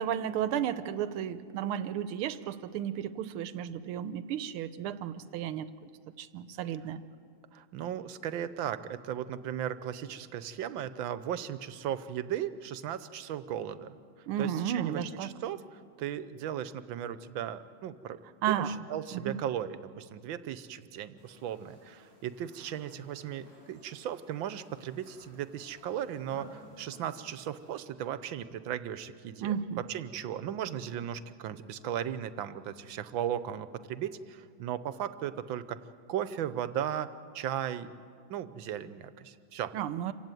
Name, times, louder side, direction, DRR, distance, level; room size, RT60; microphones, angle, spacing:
voice 1, 0.0-5.7 6.2-7.0 14.3-15.3 18.4-18.8 19.1-19.4 29.4-29.8 39.7-40.1, right 9 dB, 90° right, 14 dB, 1.7 m, -33 dB
voice 2, 7.5-14.0 14.4-18.2 18.5-29.5 29.9-35.8 36.1-37.9 38.3-39.7, right 10 dB, 70° right, 14 dB, 1.5 m, -36 dB
sound 1, 21.2-27.8, right 1 dB, 85° left, 6.4 m, -56 dB
27.0 x 16.0 x 9.1 m, 2.3 s
omnidirectional pair, 2.3 m